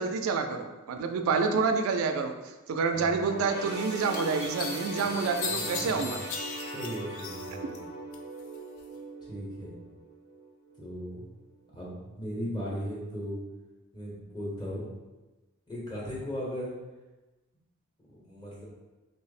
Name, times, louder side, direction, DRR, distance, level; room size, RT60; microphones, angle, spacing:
voice 1, 0.0-2.3 2.7-6.2, right 5 dB, 75° right, 6 dB, 0.3 m, -28 dB
voice 2, 2.9-3.4 5.5-6.2 6.7-7.9 9.2-9.7 10.8-11.2 11.7-13.4 13.9-14.9 15.7-16.7 18.1-18.6, equal, 20° left, -6 dB, 0.9 m, -37 dB
sound 1, 3.1-10.8 11.2-11.4 12.3-12.4, right 2 dB, 50° left, 0.8 m, -40 dB
sound 2, 3.4-3.5 4.1-7.8 8.1-8.9, left 5 dB, 70° left, 0.4 m, -38 dB
3.4 x 2.0 x 4.0 m, 1.1 s
head